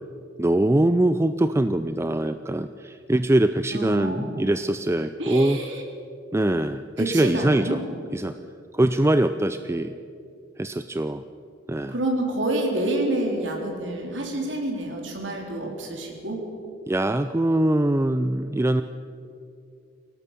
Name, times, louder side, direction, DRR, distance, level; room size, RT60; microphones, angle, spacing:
voice 1, 0.4-5.6 6.3-7.8 8.1-8.4 8.7-9.9 10.6-11.2 11.7-11.9 16.9-18.8, right 1 dB, 15° right, 10 dB, 0.4 m, -22 dB
voice 2, 3.7-4.4 5.2-5.8 7.0-7.8 11.9-16.4, right 1 dB, 75° right, 1 dB, 4.1 m, -28 dB
23.0 x 18.0 x 6.9 m, 2.5 s
head